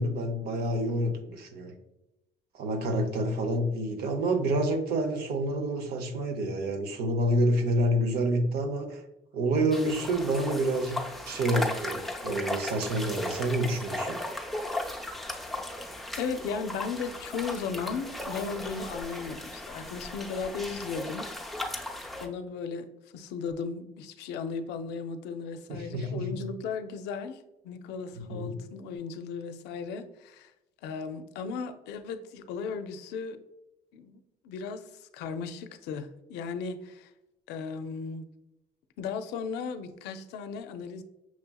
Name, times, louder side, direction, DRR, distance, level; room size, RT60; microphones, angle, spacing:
voice 1, 0.0-1.7 2.5-9.0 9.3-14.2 25.7-26.3 28.2-28.6, right 1 dB, 70° right, 7 dB, 0.7 m, -28 dB
sound 1, 9.7-22.3, left 1 dB, ahead, 0.5 m, -36 dB
voice 2, 16.2-21.8 22.2-22.9 23.1-30.5 30.8-33.4 33.9-34.2 34.4-37.1 37.5-38.3 39.0-41.0, left 5 dB, 85° left, 9 dB, 0.4 m, -36 dB
5.9 x 2.8 x 2.2 m, 0.94 s
cardioid pair, 110°, 17 cm